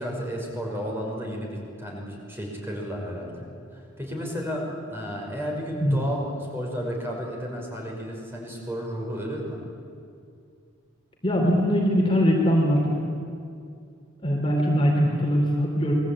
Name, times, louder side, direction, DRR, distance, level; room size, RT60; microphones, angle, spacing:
voice 1, 0.0-3.5 3.7-9.6, equal, 10° right, -1 dB, 5.8 m, -32 dB
voice 2, 11.2-13.0 14.2-15.9, equal, 25° left, -1 dB, 3.7 m, -21 dB
28.5 x 22.5 x 8.9 m, 2.4 s
head